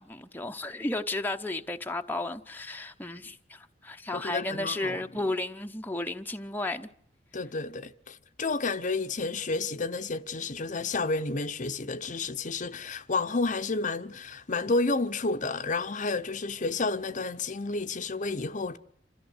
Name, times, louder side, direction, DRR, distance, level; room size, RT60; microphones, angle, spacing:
voice 1, 0.0-6.9, left 2 dB, 10° left, 0.9 m, -33 dB
voice 2, 4.1-5.0 7.3-18.8, left 3 dB, 45° left, 0.8 m, -31 dB
27.0 x 14.0 x 8.1 m
head